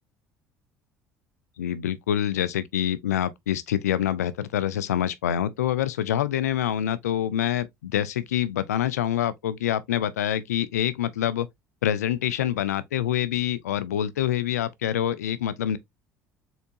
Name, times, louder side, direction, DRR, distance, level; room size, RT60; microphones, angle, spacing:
voice 1, 1.6-11.5 11.8-15.8, left 11 dB, 80° left, 0.4 m, -26 dB
4.3 x 3.8 x 2.6 m
hypercardioid pair, 60°, 8 cm